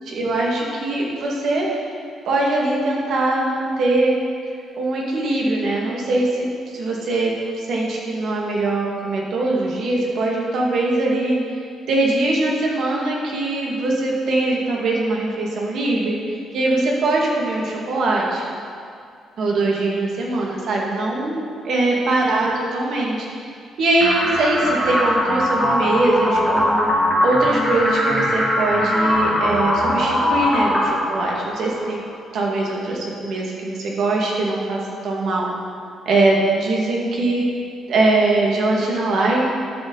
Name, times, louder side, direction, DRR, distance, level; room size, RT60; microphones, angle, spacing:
voice 1, 0.0-1.7 2.3-4.1 4.8-6.5 6.7-7.3 7.6-11.4 11.9-18.4 19.4-23.3 23.8-26.7 27.2-32.0 32.3-35.5 36.1-37.4 37.9-39.4, right 2 dB, 70° right, -2 dB, 2.0 m, -21 dB
sound 1, 24.0-32.0, left 1 dB, 5° right, 2.1 m, -21 dB
12.0 x 6.9 x 3.9 m, 2.2 s
cardioid pair, 90°, 0 cm